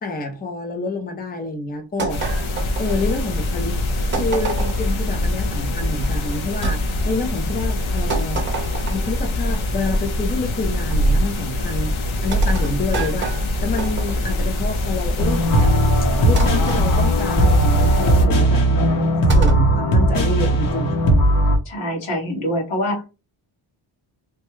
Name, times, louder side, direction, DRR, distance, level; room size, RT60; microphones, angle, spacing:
voice 1, 0.0-2.2 2.8-3.8 4.1-8.4 8.9-11.9 12.2-13.3 13.6-15.7 16.2-21.0, left 3 dB, 20° left, 0.5 m, -28 dB
sound 1, 2.0-3.4 4.1-5.0 6.6-6.8 8.1-9.2 10.9-11.3 12.3-14.4 16.4-16.9 19.3-19.7, right 3 dB, 25° right, 0.7 m, -25 dB
sound 2, 2.1-18.3, left 1 dB, 70° left, 0.9 m, -24 dB
sound 3, 15.2-21.6, right 1 dB, 45° left, 0.9 m, -17 dB
voice 2, 21.6-23.0, equal, 90° left, 1.6 m, -24 dB
3.2 x 2.2 x 3.0 m
wide cardioid pair, 155°, 48 cm